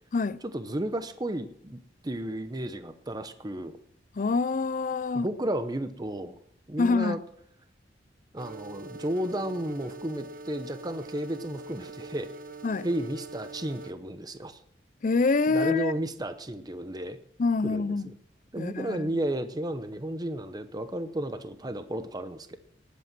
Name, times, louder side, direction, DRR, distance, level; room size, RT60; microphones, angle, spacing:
voice 1, 0.4-3.7 5.1-6.4 6.7-7.2 8.3-12.3 12.8-14.6 15.5-17.2 17.6-18.2 18.5-22.6, right 1 dB, 20° right, 0.8 m, -33 dB
voice 2, 4.2-5.3 6.8-7.2 12.6-12.9 15.0-15.9 17.4-18.1 18.6-19.1, left 3 dB, 45° left, 0.5 m, -26 dB
sound 1, 8.4-13.9, right 2 dB, 50° right, 1.1 m, -44 dB
18.0 x 8.5 x 6.0 m
head